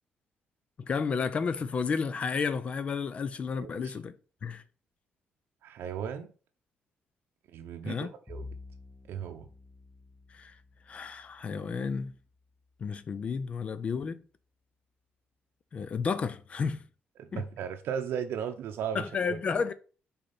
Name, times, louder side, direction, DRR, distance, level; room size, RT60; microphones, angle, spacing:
voice 1, 0.8-4.1 4.4-4.6 7.8-8.1 10.3-10.5 10.9-12.1 12.8-14.2 15.7-16.9 17.3-17.4 18.9-19.7, left 5 dB, 35° left, 0.4 m, -32 dB
voice 2, 3.6-4.0 5.6-6.3 7.5-8.5 9.1-9.5 17.2-19.1 19.4-19.5, right 8 dB, 80° right, 0.6 m, -36 dB
Bowed string instrument, 8.3-12.9, left 3 dB, 5° left, 0.8 m, -50 dB
6.5 x 4.1 x 4.2 m
cardioid pair, 175°, 4 cm